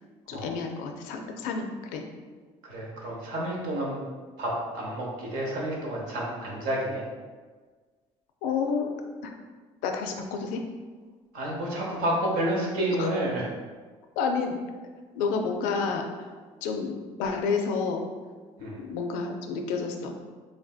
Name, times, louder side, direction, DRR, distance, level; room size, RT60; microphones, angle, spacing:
voice 1, 0.3-2.0 8.4-8.9 9.2-9.3 9.8-10.6 13.0-13.1 14.2-14.6 15.2-16.1 16.6-16.9 17.2-18.0 18.6-20.2, left 5 dB, 85° left, 4 dB, 0.4 m, -29 dB
voice 2, 2.6-4.0 4.4-7.0 11.3-13.4 18.6-18.8, right 1 dB, 80° right, -3 dB, 0.8 m, -30 dB
3.2 x 2.6 x 2.3 m, 1.4 s
supercardioid pair, 75°, 13 cm